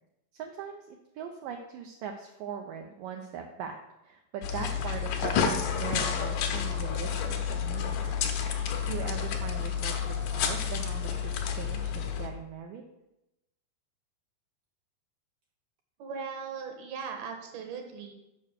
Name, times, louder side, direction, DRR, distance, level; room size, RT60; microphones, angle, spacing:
voice 1, 0.3-3.8 4.0-8.0 8.5-12.9, right 7 dB, 90° right, 3 dB, 1.9 m, -40 dB
sound 1, 4.4-12.3, left 7 dB, 75° left, 1.9 m, -30 dB
voice 2, 16.0-18.1, right 6 dB, 75° right, 4 dB, 2.9 m, -38 dB
6.9 x 5.5 x 6.4 m, 0.90 s
omnidirectional pair, 4.7 m